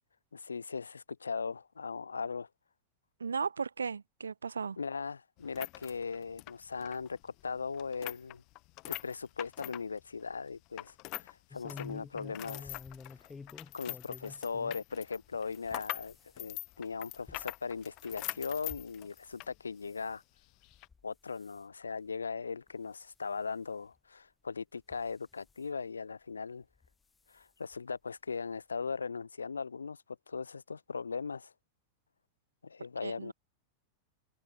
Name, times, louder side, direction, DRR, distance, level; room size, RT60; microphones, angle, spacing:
voice 1, 0.3-2.5 4.8-8.4 8.9-10.9 11.2-12.8 13.7-20.2 21.0-26.6 27.3-30.0 30.3-31.5 32.6-33.3, left 5 dB, 75° left, 1.1 m, -39 dB
voice 2, 3.2-4.8 33.0-33.3, right 5 dB, 75° right, 0.4 m, -36 dB
sound 1, 5.4-11.3 11.6-19.6 19.9-20.0 20.6-20.9, left 24 dB, 40° left, 0.6 m, -43 dB
sound 2, 11.5-14.8 15.3-19.4 19.8-20.2 20.7-21.0 21.3-21.6 22.2-22.3 22.7-22.8 23.9-24.0 24.8-25.6 26.7-26.9 27.3-27.4 27.7-27.8, left 4 dB, 15° left, 4.4 m, -51 dB
figure-of-eight pair, 90°, 0 cm